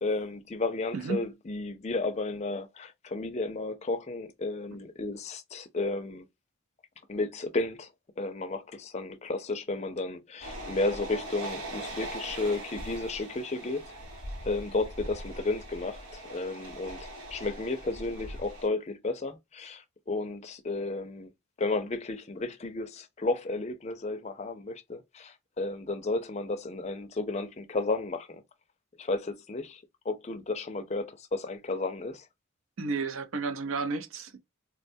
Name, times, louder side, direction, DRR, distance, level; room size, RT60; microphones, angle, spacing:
voice 1, 0.0-6.3 7.1-7.9 8.2-13.9 14.4-17.0 17.3-21.3 21.6-28.4 29.0-32.3, left 3 dB, 30° left, 0.4 m, -33 dB
sound 1, 10.4-18.7, right 1 dB, 90° right, 1.2 m, -41 dB
voice 2, 32.8-34.4, right 4 dB, 75° right, 0.5 m, -32 dB
3.6 x 2.2 x 2.5 m
head